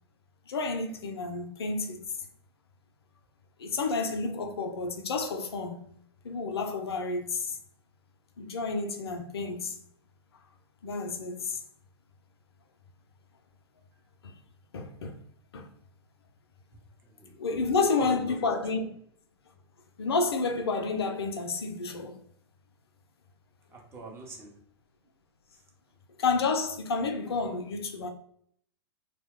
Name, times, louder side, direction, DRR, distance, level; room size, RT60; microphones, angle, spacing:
voice 1, 0.5-2.0 3.6-5.9 6.2-7.6 8.4-9.7 10.8-11.6 14.2-14.3 14.7-15.1 15.5-15.7 17.4-18.9 20.0-22.2 26.2-28.1, left 4 dB, 70° left, 0.5 m, -30 dB
voice 2, 17.0-18.3 23.7-24.6, right 3 dB, 20° right, 0.7 m, -43 dB
2.3 x 2.1 x 3.5 m
figure-of-eight pair, 100°, 14 cm